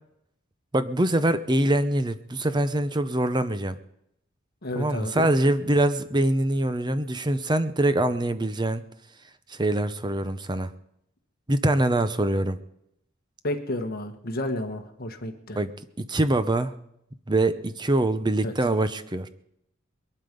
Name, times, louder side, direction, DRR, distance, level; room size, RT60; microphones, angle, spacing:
voice 1, 0.7-3.8 4.8-8.8 9.5-10.7 11.5-12.6 15.6-15.7 16.0-16.7 17.3-19.3, right 1 dB, 20° right, 12 dB, 0.7 m, -24 dB
voice 2, 4.6-5.3 13.4-15.6 18.4-18.5, left 1 dB, 50° left, 5 dB, 1.4 m, -31 dB
21.5 x 11.5 x 5.3 m, 0.79 s
head